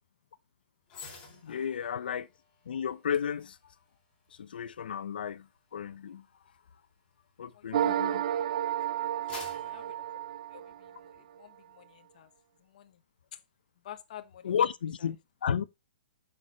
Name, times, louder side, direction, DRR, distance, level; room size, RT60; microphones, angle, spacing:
sound 1, 0.9-8.3 8.7-11.1 11.5-11.7, left 4 dB, 20° left, 4.7 m, -52 dB
voice 1, 1.4-2.3 2.6-3.6 4.3-6.2 7.4-8.3 14.4-15.6, left 8 dB, 75° left, 1.0 m, -33 dB
voice 2, 7.5-8.4 8.9-10.0 10.5-12.3 12.6-13.0 13.3-13.4 13.8-14.5, left 11 dB, 50° left, 1.2 m, -51 dB
sound 2, 7.7-11.1, right 11 dB, 50° right, 0.5 m, -31 dB
9.9 x 6.3 x 4.2 m
hypercardioid pair, 160°, 5 cm